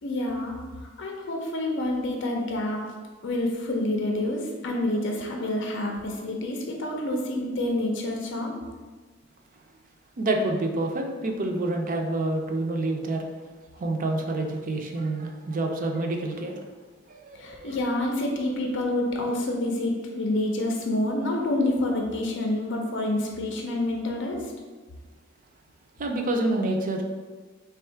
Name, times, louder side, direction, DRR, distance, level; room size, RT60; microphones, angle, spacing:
voice 1, 0.0-2.8 3.2-8.6 17.3-24.4, left 1 dB, 65° left, 1 dB, 0.5 m, -28 dB
voice 2, 10.2-13.2 13.8-16.5 17.1-17.8 26.0-27.0, right 2 dB, 45° right, 3 dB, 0.5 m, -28 dB
3.5 x 2.3 x 4.4 m, 1.4 s
head